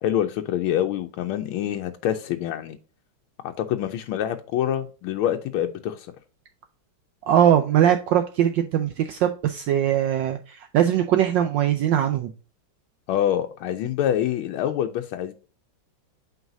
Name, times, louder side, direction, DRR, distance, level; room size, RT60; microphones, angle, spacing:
voice 1, 0.0-2.8 3.4-6.1 13.1-15.3, left 11 dB, 85° left, 1.5 m, -26 dB
voice 2, 7.3-12.3, right 10 dB, 75° right, 1.1 m, -21 dB
7.9 x 4.7 x 2.6 m
omnidirectional pair, 2.3 m